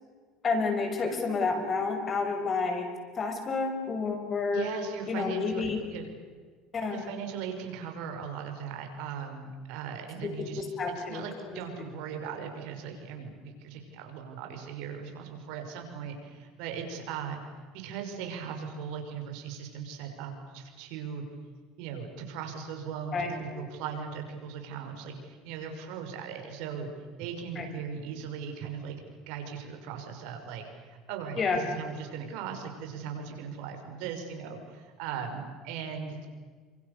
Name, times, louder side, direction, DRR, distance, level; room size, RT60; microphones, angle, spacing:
voice 1, 0.4-2.9 3.2-4.7 5.1-5.8 6.7-7.0 10.2-11.6 23.1-23.6 27.6-27.7 31.4-31.6, left 4 dB, 35° left, 6 dB, 6.4 m, -30 dB
voice 2, 4.5-6.1 6.9-10.6 11.0-17.4 17.7-21.2 21.8-26.9 27.2-29.0 29.3-36.3, right 7 dB, 75° right, 4 dB, 5.9 m, -38 dB
30.0 x 26.5 x 6.9 m, 1.5 s
supercardioid pair, 110°, 0 cm